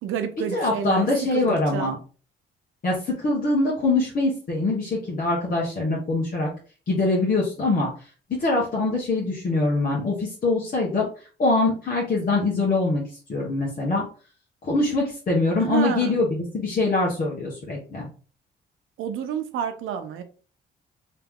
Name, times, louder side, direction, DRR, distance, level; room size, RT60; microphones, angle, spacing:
voice 1, 0.0-1.9 15.6-16.2 19.0-20.2, right 8 dB, 85° right, 0.7 m, -29 dB
voice 2, 0.5-1.9 2.8-6.5 6.9-7.9 8.3-11.1 11.4-13.0 13.3-14.0 14.6-18.1, left 2 dB, 45° left, 1.4 m, -23 dB
3.3 x 2.9 x 3.6 m
cardioid pair, 90°, 20 cm